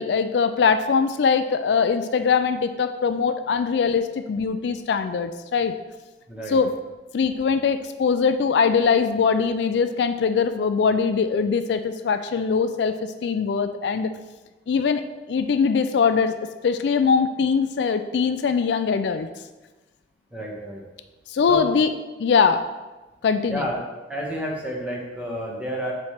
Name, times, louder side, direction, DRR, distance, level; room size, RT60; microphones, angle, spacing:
voice 1, 0.0-5.7 6.5-6.7 7.1-14.1 14.7-15.0 15.3-16.3 16.6-19.3 21.3-21.9 22.2-22.6 23.2-23.7, left 5 dB, 70° left, 10 dB, 0.3 m, -22 dB
voice 2, 6.3-6.6 20.3-20.8 21.5-21.8 23.5-23.8 24.1-25.9, equal, 10° right, -3 dB, 1.2 m, -30 dB
7.2 x 3.2 x 5.6 m, 1.2 s
head